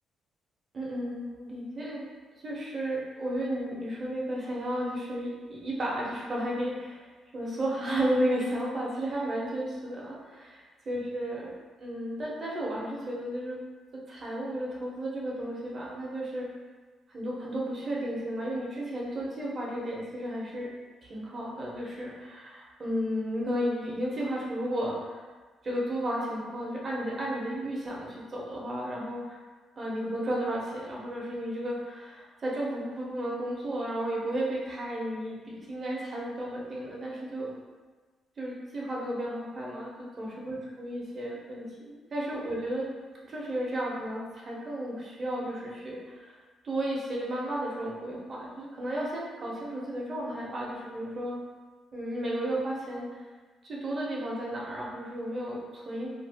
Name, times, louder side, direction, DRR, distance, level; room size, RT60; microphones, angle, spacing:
voice 1, 0.7-2.0 2.4-7.1 7.3-10.6 10.9-11.5 11.8-13.6 13.9-16.5 17.1-20.7 21.0-25.2 25.6-29.4 29.8-37.5 38.4-42.9 43.3-46.3 46.6-51.4 51.9-53.1 53.7-56.1, right 1 dB, 40° right, -4 dB, 0.9 m, -33 dB
2.6 x 2.4 x 3.4 m, 1.4 s
cardioid pair, 90°, 0 cm